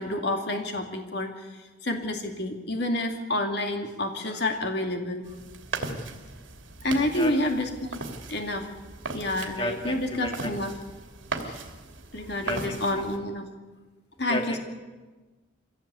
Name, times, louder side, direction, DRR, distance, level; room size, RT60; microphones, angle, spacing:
voice 1, 0.0-1.5 1.8-5.2 6.8-7.7 8.3-8.7 9.1-10.7 11.4-11.6 12.1-13.5 14.2-14.6, left 1 dB, 60° left, 4 dB, 2.5 m, -29 dB
sound 1, 5.2-13.2, right 3 dB, 80° right, 2.9 m, -38 dB
voice 2, 7.1-7.5 9.5-10.5 12.4-13.1 14.2-14.6, left 1 dB, 25° left, 3 dB, 2.2 m, -33 dB
24.5 x 17.0 x 8.4 m, 1.3 s
head